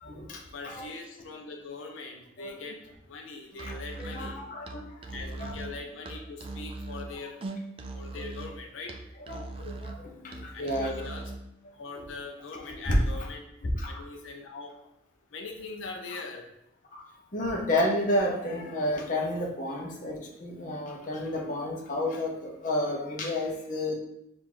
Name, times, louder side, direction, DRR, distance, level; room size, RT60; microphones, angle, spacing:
voice 1, 0.0-0.4 0.6-0.9 2.4-2.6 4.0-4.8 5.4-5.5 9.3-10.0 10.2-11.0 12.7-13.0 13.8-13.9 16.9-17.0 17.3-23.9, left 1 dB, 40° left, -1 dB, 0.7 m, -30 dB
voice 2, 0.5-4.4 5.1-7.3 7.9-8.9 10.5-11.3 11.8-13.5 13.8-14.7 15.3-16.5, left 3 dB, 85° left, 2 dB, 0.6 m, -41 dB
Musical instrument, 3.5-11.5, right 2 dB, 30° right, 0.3 m, -40 dB
4.6 x 2.5 x 3.7 m, 0.79 s
head